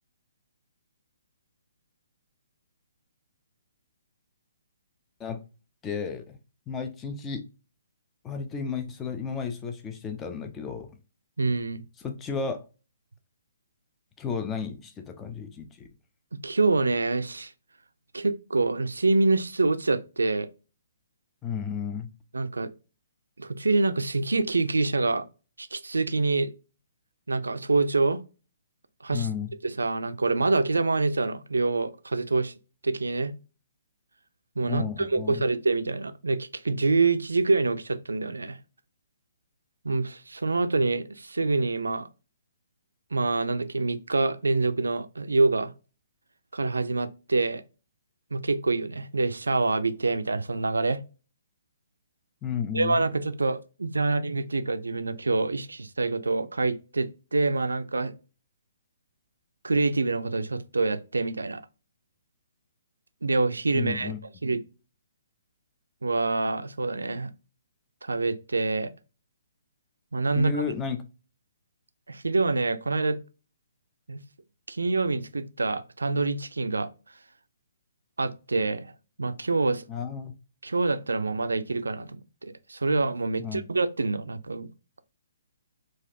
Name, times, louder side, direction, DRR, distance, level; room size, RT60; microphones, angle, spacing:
voice 1, 5.8-6.4 6.7-7.4 8.2-10.9 12.0-12.6 14.2-15.9 21.4-22.1 29.1-29.5 34.6-35.5 52.4-53.0 63.7-64.2 70.4-71.0 79.9-80.3 83.4-83.6, left 6 dB, 15° left, 0.5 m, -33 dB
voice 2, 11.4-11.8 16.4-17.5 18.1-20.5 22.3-22.7 23.4-25.3 25.6-26.5 27.3-28.2 29.0-29.3 29.6-32.5 32.8-33.3 34.6-38.6 39.8-42.1 43.1-45.7 46.5-47.6 48.3-51.0 52.7-58.1 59.6-61.6 63.2-64.1 64.4-64.6 66.0-67.3 68.0-68.9 70.1-70.7 72.1-73.2 74.1-74.2 74.7-76.9 78.2-78.9 79.2-79.8 80.6-84.7, right 3 dB, 75° right, 0.4 m, -26 dB
3.9 x 2.5 x 2.6 m
figure-of-eight pair, 130°, 0 cm